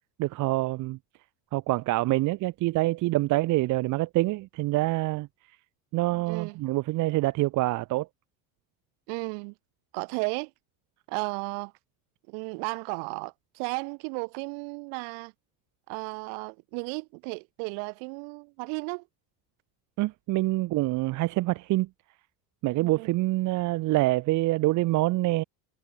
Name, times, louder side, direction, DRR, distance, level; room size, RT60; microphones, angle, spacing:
voice 1, 0.2-1.0 1.5-5.3 5.9-8.1 20.0-21.9 22.6-25.4, right 19 dB, 45° right, 1.2 m, -26 dB
voice 2, 6.3-6.6 9.1-9.5 9.9-10.5 11.1-11.7 12.3-15.3 15.9-19.0 23.0-23.1, right 40 dB or more, 75° right, 6.4 m, -34 dB
cardioid pair, 165°, 40 cm